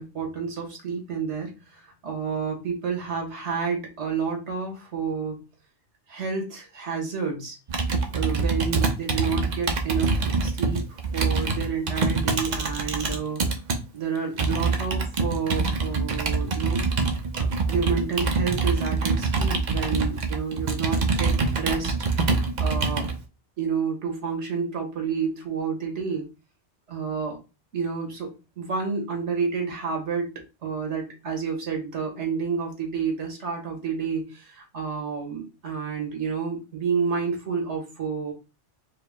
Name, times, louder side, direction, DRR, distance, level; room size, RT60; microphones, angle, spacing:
voice 1, 0.0-5.4 6.1-7.5 8.1-13.4 13.9-16.8 17.4-23.1 23.6-26.3 26.9-27.4 27.7-30.3 30.6-38.3, right 5 dB, 80° right, 1 dB, 1.6 m, -30 dB
Computer keyboard, 7.7-13.8 14.4-23.1, right 4 dB, 45° right, 0.7 m, -25 dB
4.6 x 2.1 x 3.5 m, 0.29 s
omnidirectional pair, 1.2 m